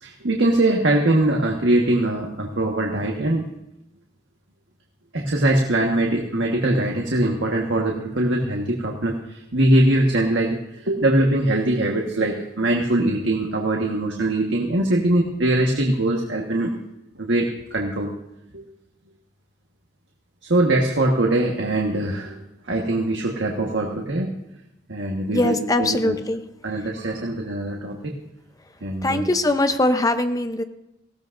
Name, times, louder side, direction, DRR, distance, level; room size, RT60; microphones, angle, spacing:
voice 1, 0.0-3.5 5.1-16.7 17.1-18.1 18.5-18.6 20.5-22.4 22.7-24.3 24.9-26.1 26.6-28.1 28.8-29.3, right 1 dB, 85° right, 0 dB, 1.5 m, -22 dB
voice 2, 25.3-26.4 29.0-30.6, left 2 dB, 20° left, 8 dB, 0.8 m, -21 dB
19.0 x 16.0 x 2.6 m, 0.87 s
head